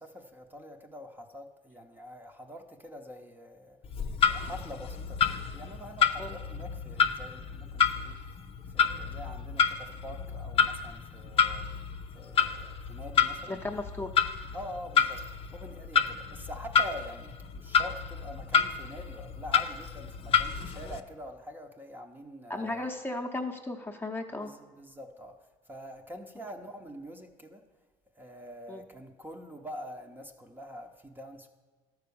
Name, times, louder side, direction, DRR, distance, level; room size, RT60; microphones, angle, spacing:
voice 1, 0.0-3.8 4.2-8.3 8.6-11.6 12.1-13.6 14.5-22.9 24.3-25.3 25.7-27.7 28.2-31.5, equal, 15° right, 4 dB, 0.8 m, -45 dB
Clock, 3.8-21.0, left 6 dB, 40° left, 0.6 m, -29 dB
voice 2, 13.5-14.1 20.8-20.9 22.5-24.5 28.7-28.8, left 2 dB, 15° left, 3 dB, 0.8 m, -35 dB
12.5 x 4.7 x 6.9 m, 1.3 s
cardioid pair, 105°, 15 cm